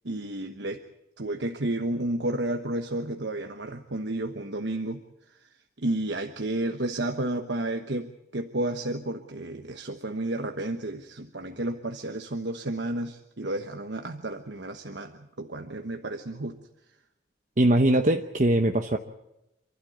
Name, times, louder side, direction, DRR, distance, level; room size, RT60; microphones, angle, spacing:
voice 1, 0.0-0.8 1.2-5.0 5.3-5.5 5.8-16.6, right 1 dB, 70° right, 5 dB, 1.2 m, -31 dB
voice 2, 17.6-19.0, right 1 dB, 40° right, 5 dB, 0.9 m, -21 dB
27.5 x 12.5 x 9.5 m, 0.90 s
head